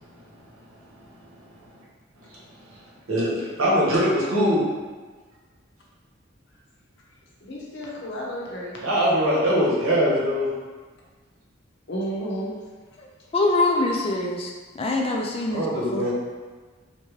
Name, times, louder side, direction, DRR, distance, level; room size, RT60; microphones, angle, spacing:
voice 1, 3.1-4.6 8.8-10.5 15.5-16.1, equal, 85° right, -6 dB, 1.0 m, -22 dB
voice 2, 7.4-8.8 11.9-12.5 12.9-13.0, equal, 55° left, -4 dB, 0.7 m, -32 dB
voice 3, 13.3-16.1, left 2 dB, 25° left, 0 dB, 0.3 m, -24 dB
3.3 x 2.7 x 3.1 m, 1.4 s
head